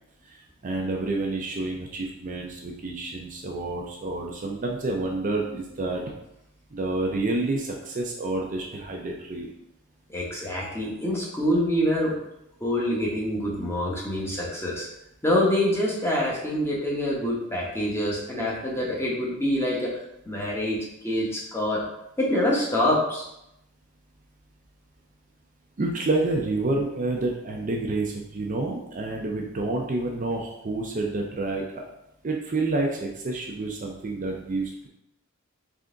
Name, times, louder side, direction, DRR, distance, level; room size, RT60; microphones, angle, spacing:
voice 1, 0.6-6.1 6.7-9.5 25.8-31.8 32.2-34.9, right 2 dB, 35° right, 0 dB, 0.5 m, -29 dB
voice 2, 10.1-12.1 12.6-14.9 15.2-19.9 20.3-20.8 21.0-21.8 22.2-23.2, left 1 dB, 10° left, -4 dB, 0.9 m, -25 dB
3.8 x 3.4 x 3.7 m, 0.82 s
head